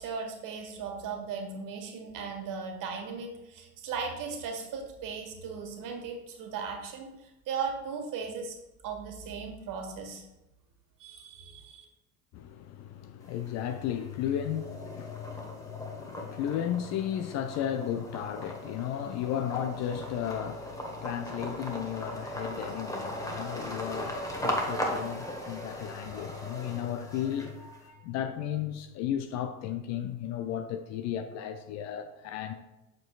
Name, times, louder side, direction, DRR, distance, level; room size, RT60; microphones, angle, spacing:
voice 1, 0.0-8.6 8.8-10.3 11.0-11.8, right 5 dB, 45° right, 1.5 m, -37 dB
voice 2, 12.3-32.5, left 10 dB, 40° left, 0.5 m, -34 dB
sound 1, 13.2-13.9 14.3-27.8, equal, 10° left, 1.2 m, -38 dB
7.6 x 6.7 x 2.4 m
figure-of-eight pair, 65°, 45 cm